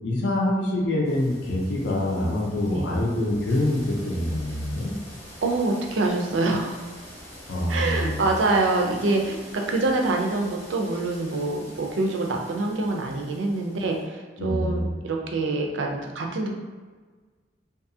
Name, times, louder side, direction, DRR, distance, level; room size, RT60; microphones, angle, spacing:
voice 1, 0.0-4.9 7.5-8.2 14.4-14.9, left 1 dB, 65° left, -2 dB, 0.5 m, -25 dB
sound 1, 1.0-14.0, equal, 15° left, 0.7 m, -45 dB
voice 2, 5.4-6.9 7.7-16.5, right 2 dB, 85° right, 2 dB, 0.4 m, -25 dB
2.7 x 2.3 x 2.6 m, 1.4 s
head